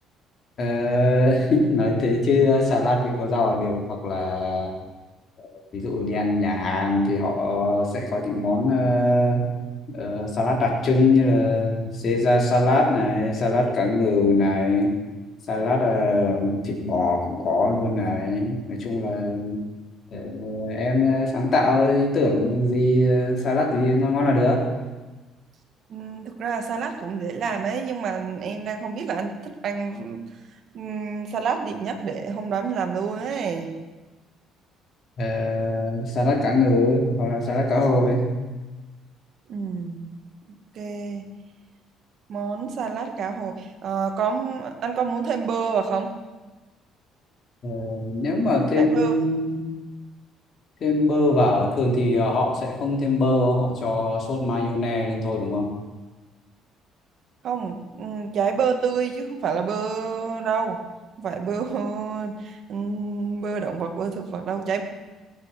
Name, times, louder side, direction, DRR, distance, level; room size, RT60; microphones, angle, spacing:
voice 1, 0.6-4.7 5.4-9.5 9.9-14.9 15.5-19.6 20.1-24.6 35.2-38.2 47.6-49.6 50.8-55.7, left 2 dB, 50° left, -1 dB, 3.9 m, -22 dB
voice 2, 25.9-30.2 30.7-33.8 39.5-40.1 40.8-41.3 42.3-46.1 48.8-49.1 57.4-60.8 61.2-64.8, right 5 dB, 55° right, 4 dB, 2.1 m, -28 dB
18.5 x 9.1 x 6.1 m, 1.2 s
cardioid pair, 105°, 0 cm